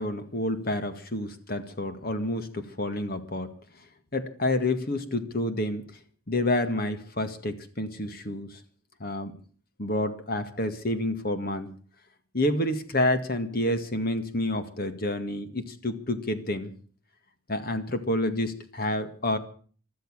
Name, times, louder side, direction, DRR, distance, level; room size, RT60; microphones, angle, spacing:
voice 1, 0.0-3.5 4.1-5.8 6.3-8.5 9.0-9.3 9.8-11.7 12.3-16.7 17.5-19.4, left 1 dB, 45° left, 9 dB, 2.0 m, -29 dB
16.0 x 13.0 x 6.5 m, 0.43 s
head